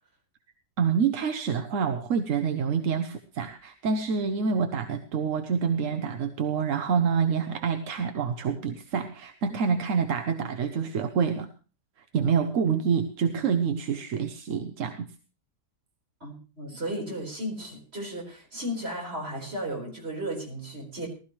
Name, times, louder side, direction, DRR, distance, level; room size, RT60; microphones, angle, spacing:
voice 1, 0.8-11.5 12.0-15.1, right 6 dB, 55° right, 7 dB, 1.0 m, -27 dB
voice 2, 16.2-21.1, right 1 dB, 35° right, -2 dB, 4.8 m, -35 dB
19.0 x 13.0 x 3.1 m, 0.35 s
omnidirectional pair, 1.9 m